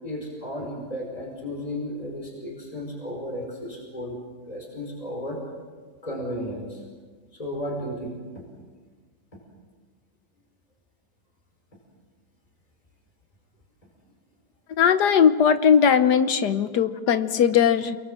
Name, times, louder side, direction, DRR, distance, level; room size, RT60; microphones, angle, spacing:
voice 1, 0.0-4.2 4.5-5.4 6.0-6.8 7.3-8.2, equal, 20° left, 0 dB, 5.4 m, -33 dB
voice 2, 14.8-18.0, left 7 dB, 70° left, 11 dB, 1.5 m, -19 dB
29.5 x 22.5 x 7.6 m, 1.5 s
omnidirectional pair, 1.9 m